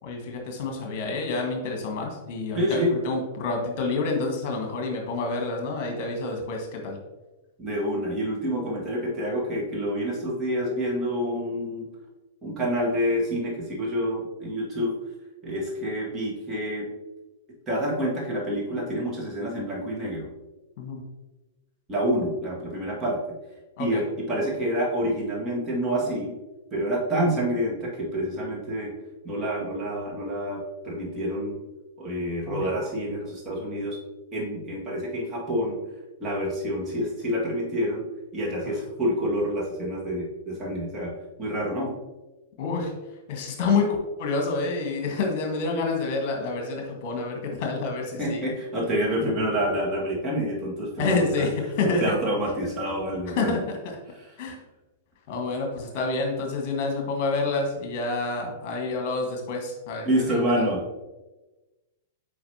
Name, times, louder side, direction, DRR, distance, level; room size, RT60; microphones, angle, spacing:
voice 1, 0.0-7.0 20.8-21.0 23.8-24.0 32.5-32.6 42.6-42.9 43.3-48.4 49.2-49.3 51.0-52.1 53.4-53.8 54.4-54.6 55.3-60.7, left 3 dB, 40° left, 2 dB, 1.7 m, -28 dB
voice 2, 2.5-3.0 7.6-11.9 12.4-14.9 15.4-16.9 17.7-20.3 21.9-23.2 23.8-26.3 26.7-28.9 29.2-31.6 32.0-34.0 34.3-35.8 36.2-38.0 38.3-41.1 41.4-42.0 48.2-51.4 51.8-53.5 60.0-60.8, equal, 20° right, -4 dB, 2.0 m, -27 dB
7.6 x 5.1 x 2.9 m, 1.1 s
figure-of-eight pair, 100°, 0 cm